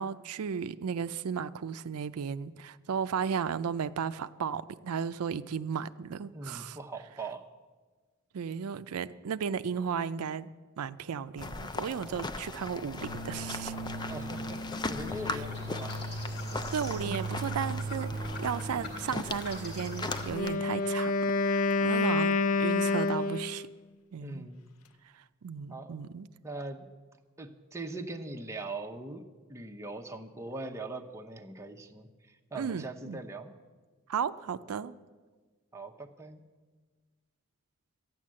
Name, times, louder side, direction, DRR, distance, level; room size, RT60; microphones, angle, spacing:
voice 1, 0.0-6.8 8.3-10.5 10.8-13.7 15.3-15.4 16.7-23.7 24.1-24.5 25.4-26.3 32.5-33.2 34.1-34.9, right 6 dB, 90° right, 12 dB, 0.4 m, -35 dB
voice 2, 6.3-7.4 14.0-16.0 24.2-24.7 25.7-26.0 26.4-26.9 27.4-33.5 35.7-36.4, right 2 dB, 15° right, 3 dB, 0.8 m, -41 dB
sound 1, 11.4-20.6, left 3 dB, 20° left, 0.4 m, -39 dB
sound 2, 13.0-20.3, right 1 dB, 50° left, 2.4 m, -38 dB
Wind instrument woodwind instrument, 20.3-23.8, left 3 dB, 75° left, 0.5 m, -28 dB
13.5 x 9.2 x 7.5 m, 1.4 s
head